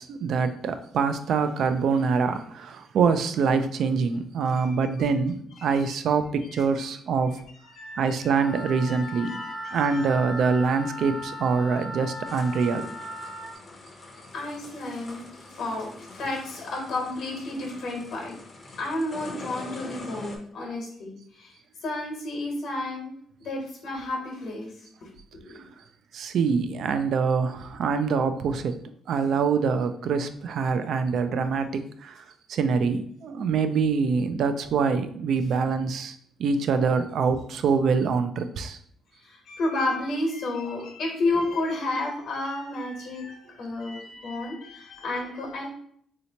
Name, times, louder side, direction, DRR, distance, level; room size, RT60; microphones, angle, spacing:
voice 1, 0.0-7.4 8.0-9.4 9.7-12.9 26.1-28.8 29.1-32.2 32.5-38.8, right 5 dB, 70° right, 9 dB, 0.3 m, -25 dB
voice 2, 4.5-5.1 5.9-6.0 6.5-6.6 7.8-8.3 9.2-10.0 14.3-18.3 18.8-21.5 21.8-23.1 23.4-24.7 25.0-25.1 25.3-25.6 39.2-45.7, left 2 dB, 75° left, 0 dB, 1.1 m, -31 dB
Wind instrument woodwind instrument, 8.3-13.5, left 1 dB, 35° right, 0.9 m, -37 dB
sound 1, 12.3-20.4, left 2 dB, 40° left, 0.6 m, -44 dB
3.2 x 2.8 x 2.8 m, 0.63 s
cardioid pair, 95°, 0 cm